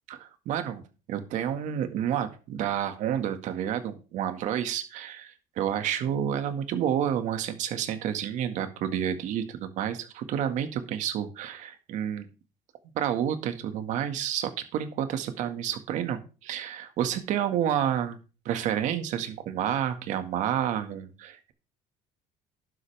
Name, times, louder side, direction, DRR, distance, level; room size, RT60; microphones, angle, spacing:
voice 1, 0.1-0.8 1.1-12.3 13.0-18.2 18.5-21.5, right 9 dB, 65° right, 8 dB, 1.9 m, -30 dB
12.0 x 9.7 x 3.5 m, 0.33 s
cardioid pair, 125°, 13 cm